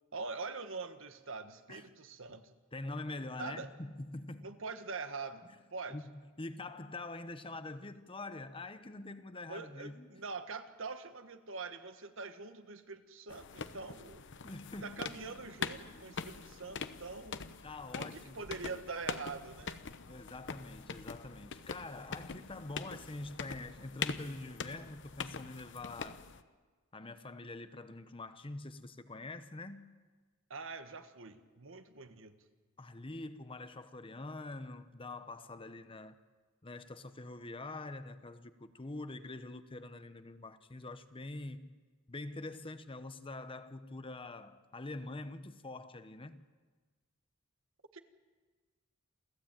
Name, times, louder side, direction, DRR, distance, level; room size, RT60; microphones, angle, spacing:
voice 1, 0.1-2.6 3.4-3.7 4.4-5.4 5.7-6.0 9.5-14.3 14.8-17.4 17.9-19.8 30.5-32.3 47.9-48.0, right 4 dB, 65° right, 1.5 m, -44 dB
voice 2, 2.7-4.5 5.9-10.2 13.7-14.0 14.4-15.4 17.6-18.4 20.1-26.3 26.9-29.9 32.8-36.2 36.6-41.8 42.1-46.4, left 2 dB, 25° left, 0.9 m, -45 dB
sound 1, 13.3-26.4, left 5 dB, 60° left, 1.0 m, -43 dB
28.0 x 15.0 x 9.0 m
head